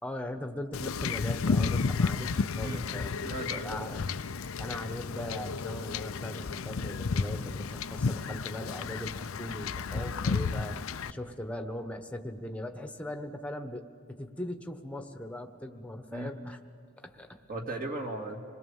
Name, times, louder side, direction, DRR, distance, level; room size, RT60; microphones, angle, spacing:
voice 1, 0.0-3.1 3.6-4.1 4.6-10.8 11.1-13.9 14.2-16.6 17.0-17.4, left 1 dB, 5° left, 5 dB, 1.2 m, -39 dB
Wind / Ocean / Boat Water vehicle, 0.7-11.1, left 4 dB, 80° left, 0.6 m, -32 dB
voice 2, 3.2-3.9 9.9-10.1 16.1-16.3 17.5-18.4, right 2 dB, 45° right, 2 dB, 2.3 m, -37 dB
27.0 x 21.0 x 7.2 m, 2.3 s
head